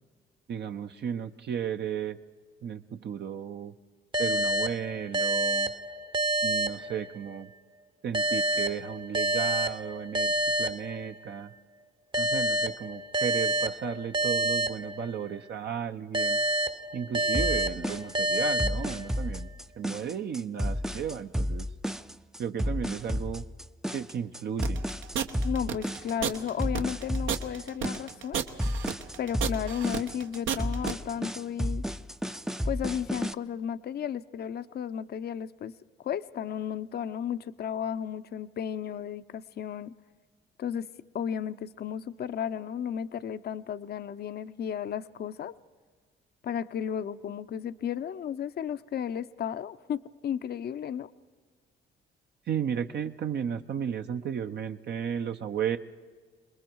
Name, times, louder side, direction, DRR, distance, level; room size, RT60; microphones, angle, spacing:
voice 1, 0.5-2.2 2.6-3.7 4.2-5.7 6.4-7.5 8.0-11.5 12.2-16.4 16.9-19.5 19.8-21.7 22.4-23.4 23.9-24.8 52.5-55.8, right 8 dB, 60° right, 6 dB, 0.8 m, -34 dB
sound 1, 4.1-7.5 8.1-11.5 12.1-15.5 16.1-19.5, right 1 dB, 25° right, 0.8 m, -29 dB
sound 2, 17.3-33.3, equal, ahead, 0.5 m, -32 dB
sound 3, 24.6-30.9, right 7 dB, 80° right, 1.2 m, -32 dB
voice 2, 25.4-28.4 29.2-31.8 32.6-35.7 36.0-39.9 40.6-40.9 41.1-45.5 46.4-51.1, left 8 dB, 55° left, 13 dB, 0.7 m, -34 dB
27.0 x 21.0 x 4.6 m, 1.5 s
cardioid pair, 90°, 20 cm